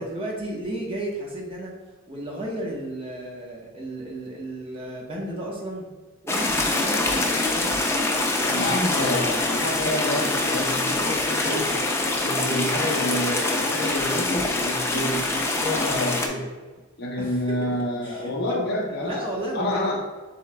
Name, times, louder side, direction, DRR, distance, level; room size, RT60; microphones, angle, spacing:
voice 1, 0.0-1.7 2.1-5.8 6.2-7.7 8.3-8.7 17.2-17.6 18.0-18.6 19.0-20.0, right 1 dB, 25° right, -2 dB, 0.9 m, -33 dB
sound 1, 6.3-16.3, left 2 dB, 10° left, 0.3 m, -24 dB
voice 2, 8.5-11.7 12.2-16.5 17.0-19.2 19.5-20.0, left 1 dB, 45° left, -1 dB, 0.8 m, -28 dB
7.1 x 3.1 x 2.2 m, 1.3 s
head